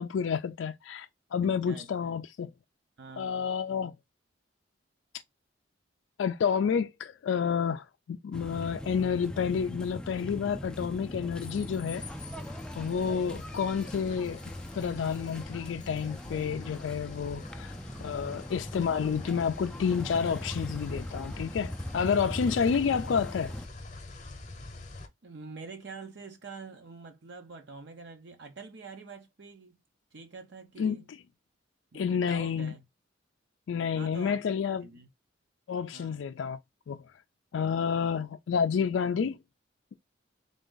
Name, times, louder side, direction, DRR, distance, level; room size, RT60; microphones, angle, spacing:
voice 1, 0.0-2.5 3.2-3.9 6.2-12.0 12.8-14.4 14.7-17.7 18.0-23.6 30.8-31.2 31.9-32.7 33.7-34.9 35.7-36.6 36.9-37.0 37.5-39.4, left 6 dB, 75° left, 0.3 m, -29 dB
voice 2, 1.4-2.1 3.0-3.5 25.2-29.8 30.1-31.1 31.9-32.8 33.9-34.4 34.8-35.1 35.9-36.3 37.7-38.1, right 4 dB, 60° right, 0.7 m, -46 dB
sound 1, 8.3-23.7, left 1 dB, 5° left, 0.4 m, -40 dB
sound 2, 11.9-25.1, left 2 dB, 40° left, 0.8 m, -48 dB
3.7 x 2.5 x 3.7 m
head